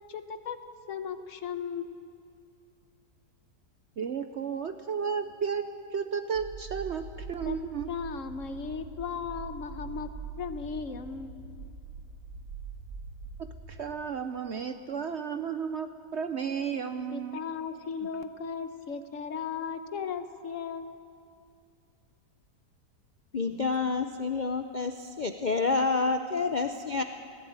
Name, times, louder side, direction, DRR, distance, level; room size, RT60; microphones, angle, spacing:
voice 1, 0.1-0.6 0.9-2.1 7.4-7.6 7.9-10.1 10.4-11.4 17.1-21.1, left 6 dB, 55° left, 10 dB, 1.2 m, -36 dB
voice 2, 4.0-7.9 13.7-17.4 18.0-18.1, right 6 dB, 60° right, 9 dB, 0.7 m, -33 dB
sound 1, 6.3-13.8, right 4 dB, 80° right, 2.4 m, -43 dB
voice 3, 23.3-27.0, left 4 dB, 75° left, 7 dB, 0.4 m, -28 dB
20.0 x 15.5 x 8.8 m, 2.4 s
omnidirectional pair, 1.8 m